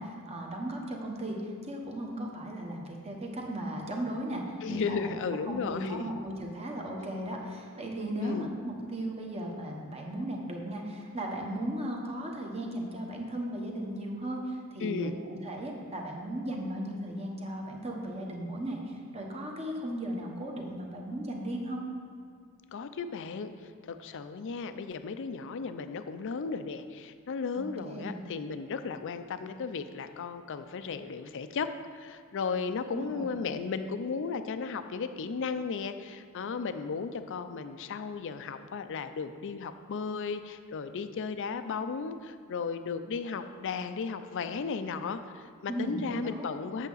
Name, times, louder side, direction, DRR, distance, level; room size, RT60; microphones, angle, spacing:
voice 1, 0.0-4.4 4.7-5.1 5.5-21.8 27.5-28.2 32.9-33.5 45.7-46.5, right 1 dB, 30° right, 0 dB, 1.1 m, -36 dB
voice 2, 4.6-6.1 8.2-8.5 14.8-15.1 22.7-46.9, left 5 dB, 60° left, 10 dB, 0.4 m, -35 dB
8.2 x 7.2 x 4.0 m, 2.3 s
head